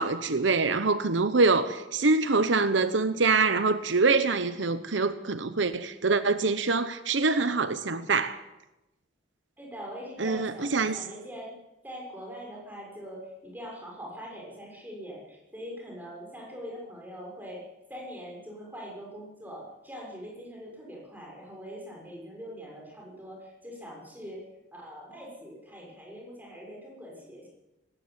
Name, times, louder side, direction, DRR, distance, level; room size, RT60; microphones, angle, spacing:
voice 1, 0.0-8.4 10.2-11.0, right 3 dB, 75° right, 1.0 m, -25 dB
voice 2, 9.6-11.6 11.8-24.4 24.7-27.5, equal, 10° right, 6.4 m, -43 dB
19.5 x 17.5 x 8.2 m
head